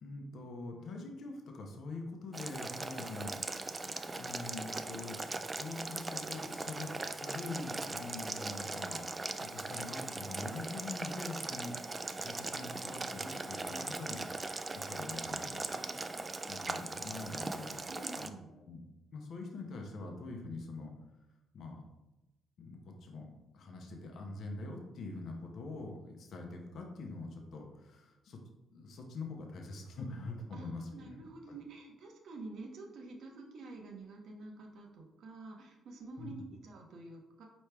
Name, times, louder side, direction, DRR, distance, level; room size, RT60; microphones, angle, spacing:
voice 1, 0.0-6.9 7.2-9.1 9.4-14.2 14.7-15.6 16.5-17.8 18.2-18.3 18.6-18.8 19.1-20.9 21.5-21.8 22.6-28.4 28.7-31.2 36.2-36.3, left 3 dB, 65° left, 2 dB, 0.7 m, -44 dB
Boiling, 2.3-18.3, right 3 dB, 25° right, 0.3 m, -40 dB
voice 2, 15.3-16.2 17.9-18.5 30.5-37.4, right 3 dB, 70° right, 1 dB, 0.8 m, -49 dB
4.5 x 3.1 x 3.3 m, 1.0 s
cardioid pair, 90°, 0 cm